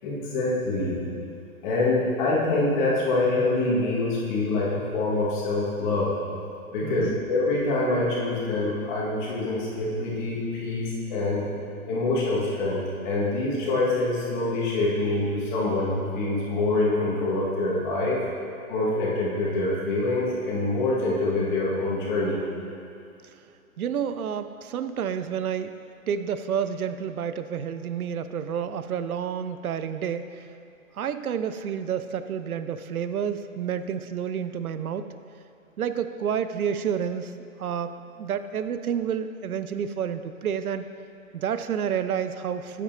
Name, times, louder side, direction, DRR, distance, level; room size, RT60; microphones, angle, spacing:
voice 1, 0.0-1.0 1.6-6.1 6.7-11.4 11.9-18.2 18.7-22.4, left 2 dB, 35° left, -5 dB, 2.0 m, -25 dB
voice 2, 6.8-7.2 23.8-25.7 26.1-30.5 30.9-35.1 35.8-40.9 41.3-42.8, right 8 dB, 85° right, 11 dB, 0.6 m, -29 dB
8.6 x 8.4 x 2.9 m, 2.5 s
hypercardioid pair, 140°, 42 cm